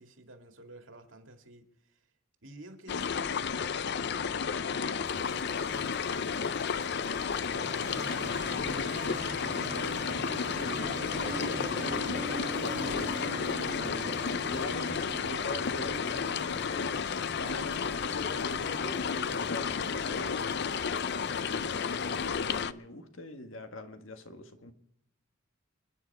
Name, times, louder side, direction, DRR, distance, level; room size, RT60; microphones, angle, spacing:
voice 1, 0.0-2.1 2.4-4.9 5.1-8.7 9.3-11.9, right 1 dB, 75° right, 2.3 m, -52 dB
sound 1, 2.9-22.7, left 6 dB, 55° left, 0.5 m, -32 dB
sound 2, 5.1-22.6, left 1 dB, 30° left, 3.6 m, -52 dB
Motorcycle, 7.5-20.5, right 1 dB, 40° right, 1.6 m, -42 dB
voice 2, 12.6-17.0 17.4-24.7, left 1 dB, 80° left, 1.8 m, -43 dB
29.5 x 10.0 x 4.8 m
head